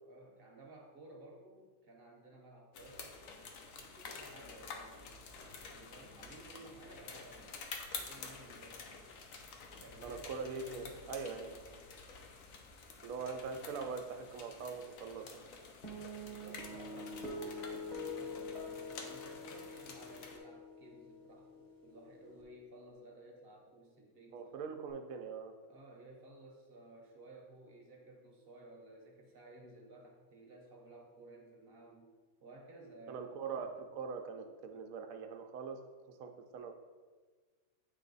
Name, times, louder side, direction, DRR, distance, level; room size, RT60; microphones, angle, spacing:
voice 1, 0.0-3.2 3.8-9.0 9.8-11.8 16.1-24.5 25.7-32.1 32.4-33.2, right 2 dB, 45° right, 0 dB, 1.0 m, -56 dB
sound 1, 2.7-20.4, left 4 dB, 70° left, 1.1 m, -50 dB
voice 2, 10.0-11.5 13.0-15.4 24.3-25.5 33.1-35.8 36.1-36.7, right 5 dB, 75° right, 5 dB, 1.1 m, -42 dB
sound 2, 15.8-22.4, left 2 dB, 35° left, 1.3 m, -45 dB
8.3 x 3.3 x 3.9 m, 1.4 s
omnidirectional pair, 1.5 m